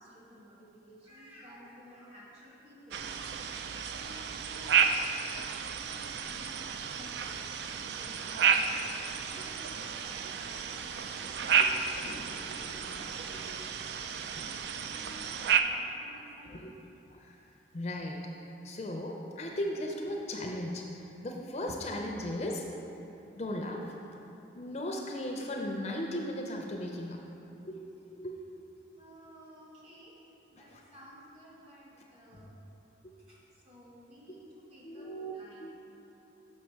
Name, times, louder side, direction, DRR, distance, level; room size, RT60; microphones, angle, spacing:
voice 1, 0.0-3.0 3.8-4.9 5.3-13.3 14.2-16.6 28.9-32.5 33.2-35.7, equal, 35° right, -6 dB, 1.5 m, -54 dB
sound 1, 2.9-15.6, right 7 dB, 65° right, 0.3 m, -32 dB
voice 2, 12.1-13.1 14.1-14.5 16.5-16.7 17.1-17.3 17.7-18.2 18.6-20.9 21.2-22.7 23.4-23.9 24.5-27.2 27.6-28.3 30.7-30.8 34.8-35.3 35.6-35.7, left 1 dB, 35° left, 1 dB, 0.5 m, -37 dB
6.4 x 5.5 x 4.5 m, 2.9 s
head